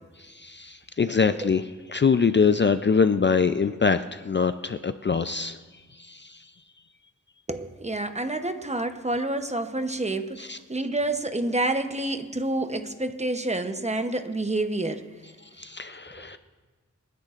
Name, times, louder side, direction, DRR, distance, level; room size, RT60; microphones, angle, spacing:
voice 1, 0.2-1.6 1.9-5.6 6.0-6.4 10.4-10.6 15.6-16.4, left 5 dB, 35° left, 10 dB, 0.4 m, -24 dB
voice 2, 7.5-15.2 16.2-16.4, right 2 dB, 20° right, 8 dB, 0.8 m, -28 dB
28.0 x 10.5 x 2.5 m, 1.4 s
wide cardioid pair, 80°, 31 cm